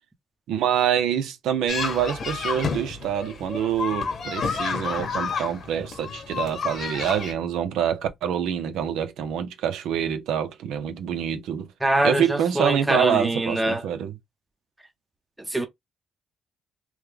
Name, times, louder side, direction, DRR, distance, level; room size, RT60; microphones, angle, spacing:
voice 1, 0.5-11.7 12.0-14.1, right 9 dB, 85° right, 0.7 m, -26 dB
sound 1, 1.7-7.3, left 5 dB, 50° left, 1.0 m, -30 dB
voice 2, 11.8-13.8 15.5-15.7, right 1 dB, 10° right, 0.8 m, -23 dB
3.0 x 2.2 x 3.5 m
cardioid pair, 90°, 0 cm